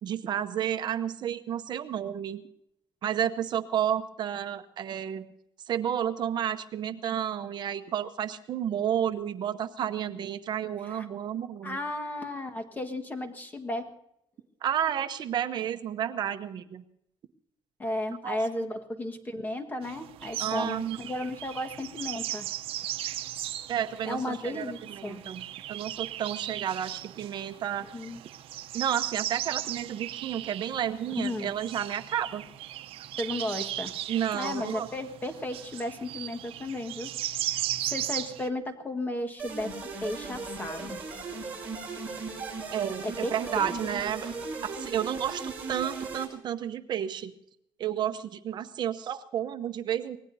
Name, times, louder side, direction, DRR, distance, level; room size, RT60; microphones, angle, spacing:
voice 1, 0.0-2.4 3.0-5.2 5.7-11.8 14.6-16.8 18.2-18.4 20.4-21.0 23.7-27.8 28.7-32.4 34.1-34.9 42.7-44.3 44.6-47.3 47.8-50.2, right 9 dB, 50° right, 9 dB, 0.8 m, -31 dB
voice 2, 11.6-13.9 17.8-22.5 24.0-25.2 27.9-28.2 31.1-31.5 33.2-33.9 34.3-37.1 37.5-39.7 40.0-41.0 43.0-43.3 43.6-43.7, left 1 dB, 20° left, 6 dB, 1.6 m, -34 dB
sound 1, 19.8-38.5, right 13 dB, 85° right, 0.7 m, -37 dB
sound 2, 39.4-46.3, right 4 dB, 15° right, 6.8 m, -37 dB
25.0 x 19.0 x 2.7 m, 0.77 s
cardioid pair, 155°, 9 cm